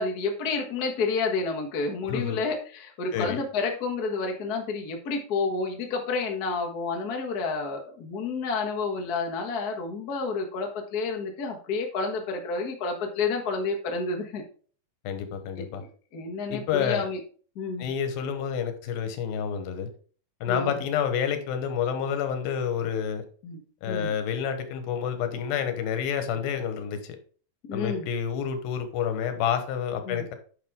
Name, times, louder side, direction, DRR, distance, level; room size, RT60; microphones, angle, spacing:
voice 1, 0.0-14.4 15.7-17.2 17.5-17.9 20.5-20.7 23.4-23.6 23.9-24.1 27.7-28.1 30.0-30.2, left 4 dB, 45° left, 1.2 m, -30 dB
voice 2, 2.1-2.4 3.1-3.4 15.0-15.8 16.5-17.1 17.8-19.9 20.4-23.2 23.8-27.2 27.7-30.4, left 8 dB, 85° left, 2.9 m, -29 dB
9.9 x 5.7 x 3.6 m
omnidirectional pair, 4.0 m